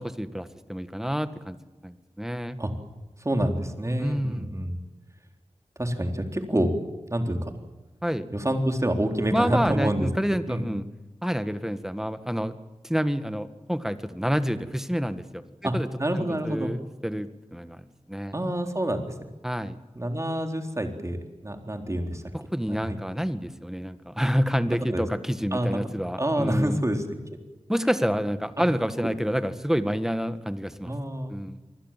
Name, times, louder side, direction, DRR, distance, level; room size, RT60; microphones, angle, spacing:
voice 1, 0.0-1.6 1.8-2.6 4.0-4.5 8.0-8.3 9.3-10.8 11.2-12.6 12.8-15.9 16.2-18.3 19.4-19.7 22.3-26.8 27.7-30.9 31.3-31.6, equal, 5° right, 10 dB, 1.8 m, -28 dB
voice 2, 3.2-4.8 5.8-6.7 7.1-7.5 8.3-10.1 10.5-10.7 15.6-15.7 16.0-16.7 18.3-19.1 20.0-21.2 21.4-22.2 22.7-23.0 24.7-25.0 25.5-25.8 26.2-27.2 30.9-31.4, right 1 dB, 25° right, 5 dB, 3.9 m, -27 dB
27.0 x 20.5 x 7.6 m, 1.1 s
wide cardioid pair, 65°, 11 cm